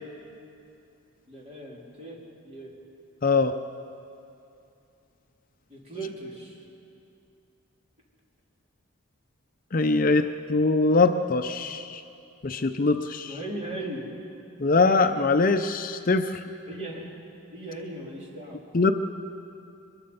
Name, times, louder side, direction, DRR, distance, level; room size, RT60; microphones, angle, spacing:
voice 1, 1.3-2.2 2.4-2.7 5.7-6.6 13.3-14.1 16.7-17.1 17.5-18.6, right 2 dB, 30° right, -3 dB, 3.2 m, -37 dB
voice 2, 3.2-3.5 9.7-12.0 12.4-13.3 14.6-16.4 18.7-18.9, left 3 dB, 40° left, 7 dB, 0.5 m, -22 dB
23.5 x 21.0 x 5.5 m, 2.7 s
head